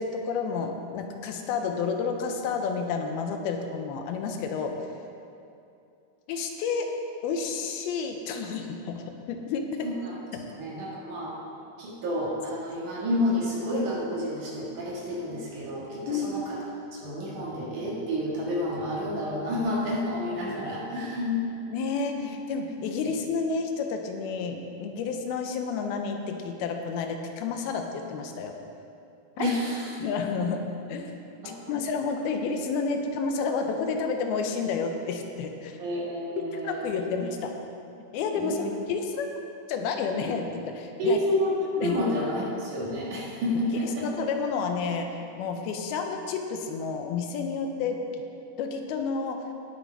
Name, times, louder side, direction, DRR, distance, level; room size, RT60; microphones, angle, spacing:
voice 1, 0.0-4.7 6.3-6.9 7.2-9.8 10.3-10.4 16.1-16.3 21.7-28.5 29.4-29.5 30.0-30.6 30.9-31.2 31.7-35.8 36.6-37.5 38.1-38.6 38.9-39.3 39.7-41.2 41.8-42.0 44.0-45.1 45.4-48.0 48.6-49.4, left 5 dB, 85° left, 4 dB, 2.7 m, -30 dB
voice 2, 9.8-10.2 10.6-11.3 11.8-16.6 16.9-21.5 29.4-29.9 31.4-31.8 35.8-36.9 38.4-38.7 41.0-44.1, left 1 dB, 60° right, -5 dB, 3.2 m, -29 dB
17.5 x 6.7 x 4.7 m, 2.6 s
omnidirectional pair, 4.4 m